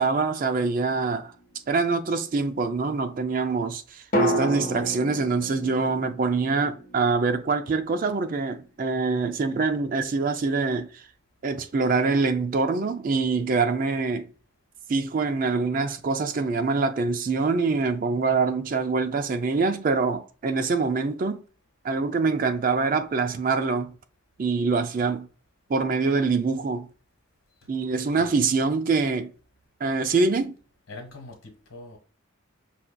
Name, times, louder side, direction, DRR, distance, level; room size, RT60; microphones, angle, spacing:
voice 1, 0.0-1.3 1.7-11.0 11.4-14.3 14.9-21.4 21.8-23.9 24.4-25.3 25.7-26.9 27.7-29.3 29.8-30.6, right 4 dB, 40° right, 0.4 m, -25 dB
sound 1, 1.2-1.7 4.1-8.1 8.3-8.4, right 1 dB, 40° left, 1.0 m, -31 dB
voice 2, 30.9-32.0, left 2 dB, 85° left, 1.4 m, -43 dB
5.7 x 2.5 x 2.2 m
head